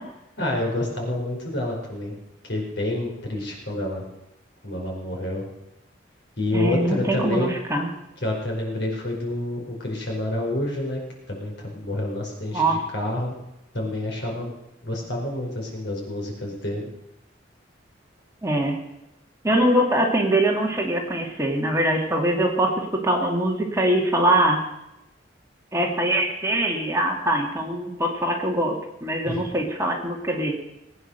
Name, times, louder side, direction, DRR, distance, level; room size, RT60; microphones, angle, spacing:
voice 1, 0.4-2.2 2.4-4.1 4.6-5.4 6.4-7.5 8.2-13.3 13.7-14.5 14.8-16.9 29.2-29.4, left 1 dB, 65° left, 0 dB, 5.0 m, -28 dB
voice 2, 6.5-7.9 12.5-12.8 18.4-18.7 19.4-24.6 25.7-28.7 29.0-30.5, right 1 dB, 15° right, 1 dB, 2.3 m, -23 dB
20.0 x 9.4 x 6.7 m, 0.88 s
head